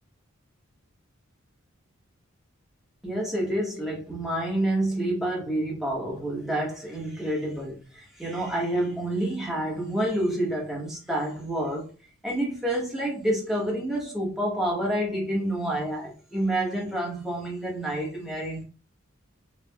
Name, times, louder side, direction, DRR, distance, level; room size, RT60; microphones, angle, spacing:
voice 1, 3.0-11.9 12.2-18.6, right 1 dB, ahead, 1.0 m, -28 dB
4.4 x 2.3 x 2.3 m
head